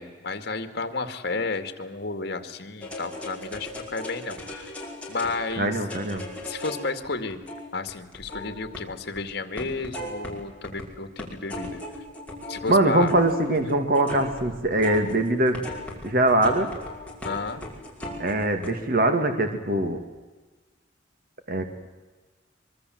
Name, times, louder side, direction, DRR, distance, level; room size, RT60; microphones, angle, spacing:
voice 1, 0.0-4.8 5.1-5.7 6.4-7.4 7.7-11.7 12.5-13.1 17.2-17.6, left 3 dB, 60° left, 8 dB, 2.2 m, -32 dB
sound 1, 2.8-9.2 9.6-10.8 11.2-18.7, left 2 dB, 5° left, 5.5 m, -38 dB
voice 2, 5.6-6.2 12.7-15.6 16.0-16.7 18.2-20.0 21.5-21.7, right 1 dB, 50° right, 7 dB, 2.3 m, -22 dB
24.5 x 23.5 x 7.9 m, 1.3 s
head